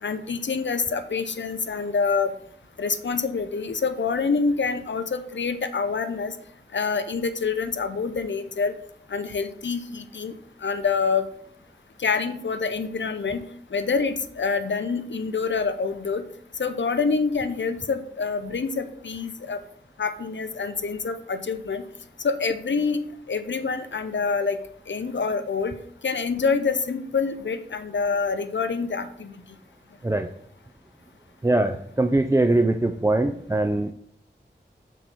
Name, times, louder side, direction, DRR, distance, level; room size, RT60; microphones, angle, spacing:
voice 1, 0.0-2.3 2.8-6.4 6.7-8.7 9.1-10.3 10.6-11.3 12.0-13.4 13.7-16.2 16.6-19.6 20.0-21.8 22.2-23.0 23.3-24.6 24.9-25.8 26.0-29.4, left 5 dB, 70° left, 10 dB, 0.6 m, -26 dB
voice 2, 31.4-33.9, right 2 dB, 15° right, 6 dB, 0.3 m, -22 dB
6.0 x 4.5 x 4.0 m, 0.67 s
wide cardioid pair, 45°, 19 cm